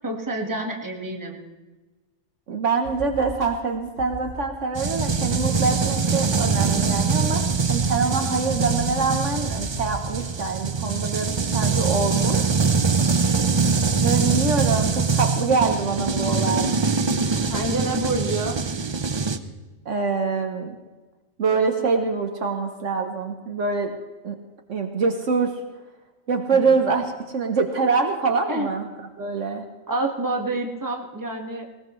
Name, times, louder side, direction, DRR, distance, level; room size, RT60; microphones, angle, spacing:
voice 1, 0.0-1.4 17.5-18.6 26.5-26.8 28.5-28.7 29.9-31.7, right 2 dB, 15° right, 0 dB, 1.6 m, -28 dB
voice 2, 2.5-7.4 7.7-12.6 13.9-16.7 19.9-20.8 21.4-23.9 24.2-24.4 24.7-25.5 26.3-28.9 29.2-29.6, right 4 dB, 60° right, 5 dB, 1.3 m, -24 dB
sound 1, 2.8-3.5 4.0-4.4 4.8-5.8 6.5-6.6 6.9-7.0 7.4-8.0 8.5-8.9 9.4-10.3, equal, 65° left, 2.3 m, -37 dB
sound 2, 4.7-19.4, right 5 dB, 45° right, 0.3 m, -23 dB
19.5 x 19.0 x 3.2 m, 1.2 s
omnidirectional pair, 1.4 m